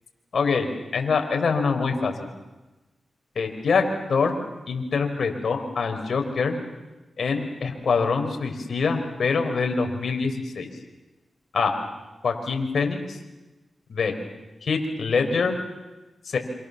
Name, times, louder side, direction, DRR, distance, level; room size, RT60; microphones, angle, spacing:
voice 1, 0.3-0.7 0.9-2.3 3.4-4.4 4.7-6.6 7.2-10.7 11.5-11.7 12.2-13.2 13.9-14.1 14.6-15.6 16.2-16.4, left 4 dB, 70° left, 4 dB, 5.5 m, -24 dB
28.5 x 27.5 x 7.2 m, 1.1 s
cardioid pair, 45°, 0 cm